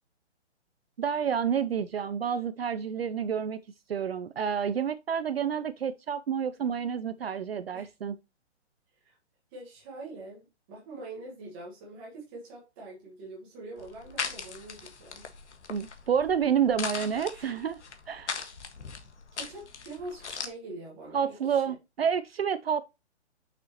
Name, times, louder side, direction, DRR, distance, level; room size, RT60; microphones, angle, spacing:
voice 1, 1.0-3.6 3.9-8.2 15.7-17.8 18.1-18.4 21.1-22.8, right 7 dB, 60° right, 0.5 m, -29 dB
voice 2, 9.5-15.3 19.3-21.6, right 2 dB, 10° right, 1.2 m, -44 dB
sound 1, 13.8-20.5, left 5 dB, 75° left, 1.6 m, -39 dB
6.5 x 6.1 x 2.9 m
hypercardioid pair, 180°, 35 cm